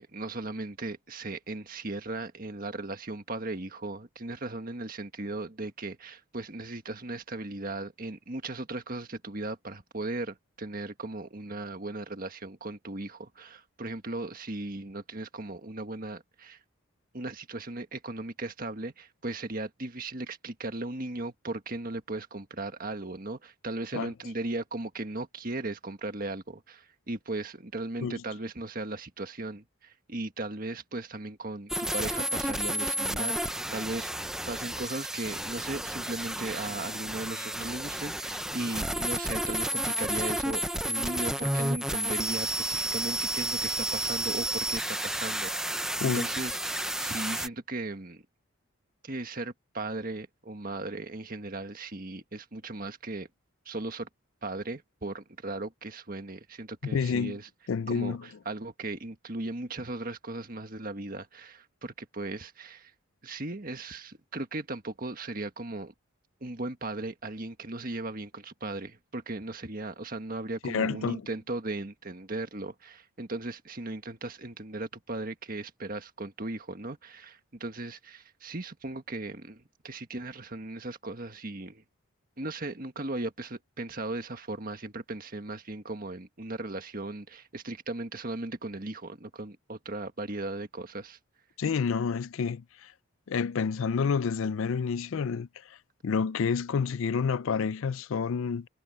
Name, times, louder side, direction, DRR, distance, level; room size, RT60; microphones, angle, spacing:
voice 1, 0.0-16.6 17.1-48.2 49.0-53.3 53.7-54.1 54.4-57.5 57.9-62.9 63.2-65.9 66.4-81.8 82.4-91.2, right 2 dB, 40° right, 1.6 m, -37 dB
sound 1, 31.7-47.5, right 1 dB, 5° right, 0.5 m, -31 dB
voice 2, 56.9-57.4 57.7-58.2 70.6-71.2 91.6-92.9 93.3-95.8 96.0-98.7, left 6 dB, 70° left, 0.4 m, -29 dB
head